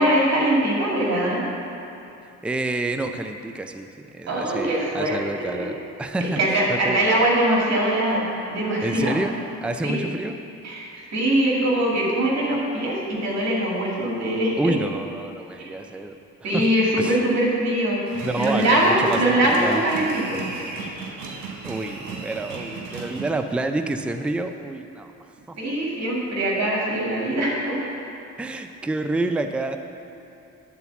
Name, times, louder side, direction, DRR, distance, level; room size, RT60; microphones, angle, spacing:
voice 1, 0.0-1.4 4.3-5.7 6.4-9.2 9.8-10.1 10.6-14.7 15.6-15.7 16.4-18.0 18.4-20.5 25.5-27.9, right 1 dB, 60° right, -3 dB, 2.2 m, -22 dB
voice 2, 2.2-7.0 8.8-9.4 9.6-10.3 14.6-16.2 16.4-16.7 17.0-17.2 18.2-19.8 21.6-25.1 25.5-25.6 28.4-29.8, right 2 dB, 5° right, 7 dB, 0.4 m, -28 dB
sound 1, 18.1-23.3, right 4 dB, 85° right, 1.2 m, -35 dB
9.8 x 4.0 x 7.0 m, 2.9 s
cardioid pair, 90°, 30 cm